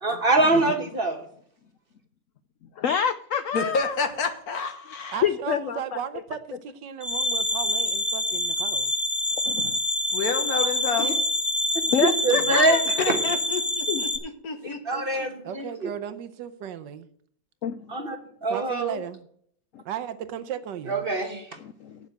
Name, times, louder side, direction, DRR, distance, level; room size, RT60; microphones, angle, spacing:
voice 1, 0.0-1.2 11.0-11.1 12.0-12.8 13.1-13.2 14.6-15.9 17.9-18.2 18.4-19.0 20.9-21.5, right 2 dB, 35° right, 1.0 m, -24 dB
voice 2, 2.8-4.0 5.2-5.8 9.5-9.8 11.9-12.8 13.9-14.0 17.6-17.8 19.7-19.8 21.6-22.0, left 8 dB, 80° left, 0.7 m, -27 dB
voice 3, 3.5-5.3 10.1-11.2 12.9-15.3, left 4 dB, 55° left, 1.6 m, -30 dB
voice 4, 5.1-8.9 12.2-12.6 15.4-17.1 18.5-19.3 19.8-21.0, right 9 dB, 75° right, 1.4 m, -35 dB
sound 1, 7.0-14.2, left 1 dB, 20° left, 1.0 m, -26 dB
8.7 x 7.4 x 7.9 m
omnidirectional pair, 2.0 m